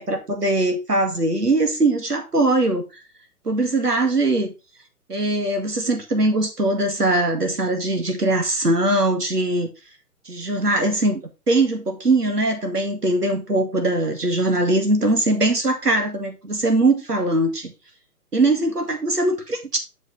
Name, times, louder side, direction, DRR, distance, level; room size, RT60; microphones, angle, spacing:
voice 1, 0.0-2.8 3.5-4.5 5.1-9.7 10.3-11.2 11.5-17.7 18.3-19.8, right 2 dB, 80° right, 2.1 m, -21 dB
7.3 x 6.5 x 3.3 m
figure-of-eight pair, 135°, 47 cm